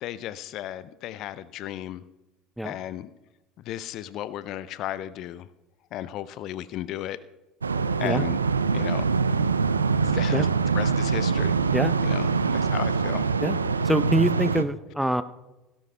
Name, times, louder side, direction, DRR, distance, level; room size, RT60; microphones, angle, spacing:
voice 1, 0.0-2.0 2.6-3.1 3.7-5.5 5.9-7.2 8.0-8.4 8.7-9.1 10.1-11.6 12.0-13.3, left 12 dB, 50° left, 16 dB, 0.4 m, -34 dB
sound 1, 7.6-14.6, right 5 dB, 85° right, 0.4 m, -24 dB
voice 2, 13.8-15.2, right 1 dB, 5° right, 13 dB, 0.6 m, -25 dB
17.5 x 16.0 x 2.2 m, 1.1 s
figure-of-eight pair, 65°, 0 cm